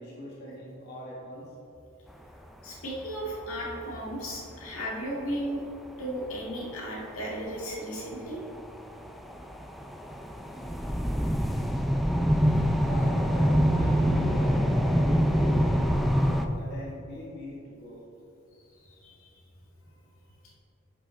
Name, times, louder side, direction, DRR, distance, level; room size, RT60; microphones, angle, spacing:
voice 1, 0.0-1.5 12.8-16.0 16.5-18.0, equal, 50° left, -6 dB, 1.4 m, -41 dB
voice 2, 2.6-5.6 6.0-8.4 18.9-19.3, equal, 80° left, -4 dB, 2.0 m, -35 dB
sound 1, 3.1-3.2 3.4-4.1 4.6-4.7 5.3-5.4 6.2-6.6 7.3-7.4 7.7-16.5, equal, ahead, 0.3 m, -25 dB
11.0 x 5.5 x 3.8 m, 2.6 s
head